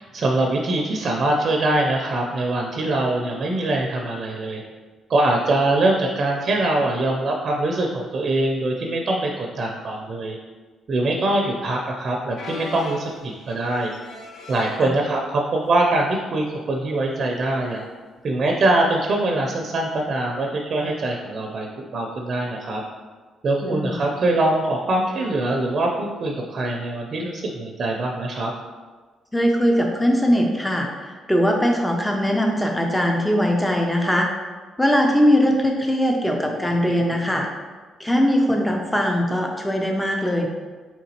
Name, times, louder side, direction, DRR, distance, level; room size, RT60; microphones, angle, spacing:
voice 1, 0.1-4.6 5.1-10.4 10.9-13.9 14.5-17.8 18.2-21.7 21.9-22.8 23.4-28.5, right 2 dB, 50° right, 1 dB, 0.5 m, -23 dB
sound 1, 12.4-14.8 15.6-15.8 16.2-16.3 17.2-17.4 19.0-19.1, left 3 dB, 70° left, 0.7 m, -39 dB
voice 2, 23.6-24.0 29.3-34.3 34.8-37.5 38.0-40.5, equal, 10° left, 1 dB, 0.5 m, -20 dB
4.4 x 3.8 x 2.9 m, 1.4 s
cardioid pair, 90°, 0 cm